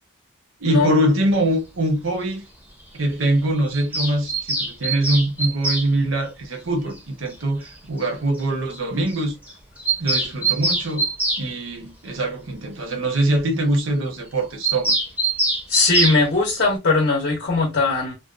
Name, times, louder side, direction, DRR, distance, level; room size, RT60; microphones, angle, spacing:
voice 1, 0.6-2.4 2.9-9.4 10.0-11.1 11.4-14.9, right 1 dB, 75° right, 0.8 m, -23 dB
Bird vocalization bird call bird song, 3.7-5.9 7.3-7.4 7.6-7.7 8.0-8.1 8.4-8.5 8.7-8.8 9.1-9.2 9.5-11.4 14.6-16.2, right 2 dB, 10° right, 0.5 m, -23 dB
voice 2, 15.7-18.1, left 3 dB, 55° left, 0.6 m, -19 dB
2.6 x 2.1 x 2.4 m
head